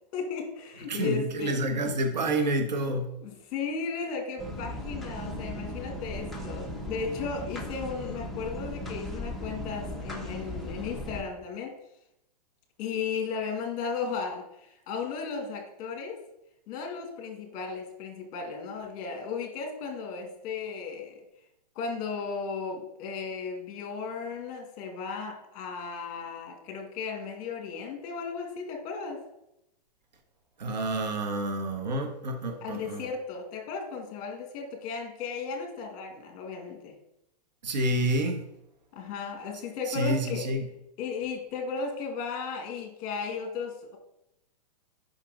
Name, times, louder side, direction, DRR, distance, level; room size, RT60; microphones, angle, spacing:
voice 1, 0.1-1.6 3.2-11.7 12.8-16.2 16.7-21.2 21.8-29.2 32.6-36.9 38.9-40.5 41.0-44.0, left 5 dB, 35° left, 2.1 m, -35 dB
voice 2, 0.9-3.1 30.6-33.0 37.6-38.4 39.9-40.7, right 1 dB, 85° right, 1.4 m, -28 dB
sound 1, 4.4-11.2, left 1 dB, ahead, 1.0 m, -37 dB
6.6 x 5.9 x 5.0 m
hypercardioid pair, 135°, 21 cm